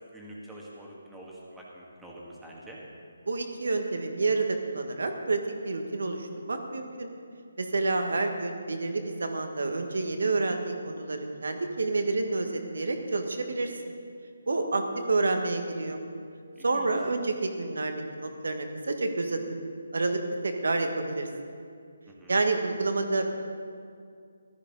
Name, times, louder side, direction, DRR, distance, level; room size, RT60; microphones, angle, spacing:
voice 1, 0.1-2.8 16.6-16.9 22.1-22.4, right 1 dB, 5° right, -5 dB, 2.1 m, -46 dB
voice 2, 3.3-7.1 7.6-13.7 14.5-16.0 16.6-19.4 19.9-21.3 22.3-23.3, right 3 dB, 65° right, 5 dB, 1.5 m, -29 dB
15.0 x 13.0 x 4.0 m, 2.3 s
figure-of-eight pair, 145°, 0 cm